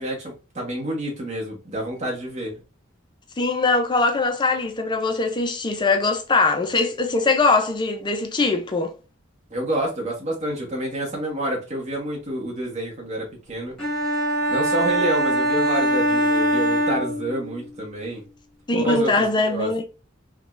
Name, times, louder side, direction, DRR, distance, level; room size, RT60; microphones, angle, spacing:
voice 1, 0.0-2.6 9.5-13.8 14.5-18.3 18.8-19.7, right 1 dB, 35° right, 1.2 m, -28 dB
voice 2, 3.4-8.9 18.7-19.8, left 3 dB, 20° left, 0.5 m, -21 dB
sound 1, 13.8-17.7, right 1 dB, 5° left, 1.4 m, -22 dB
3.7 x 2.3 x 2.5 m
head